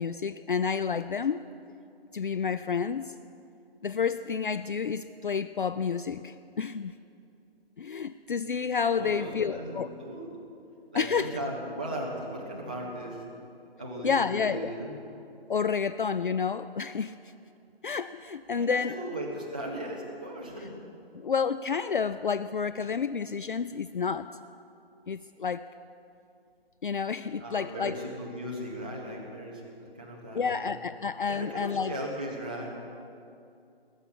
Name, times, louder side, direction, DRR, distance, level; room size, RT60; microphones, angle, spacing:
voice 1, 0.0-1.4 2.1-3.1 3.8-6.9 7.8-9.9 10.9-11.3 14.0-14.7 15.5-17.2 17.8-18.9 21.1-24.3 25.1-25.7 26.8-28.0 30.3-31.9, left 6 dB, 55° left, 13 dB, 0.4 m, -30 dB
voice 2, 8.9-10.3 10.9-13.2 13.8-15.0 18.5-20.7 27.4-30.8 31.3-32.7, right 1 dB, 10° right, -5 dB, 0.6 m, -37 dB
20.0 x 7.3 x 9.9 m, 2.5 s
hypercardioid pair, 175°, 31 cm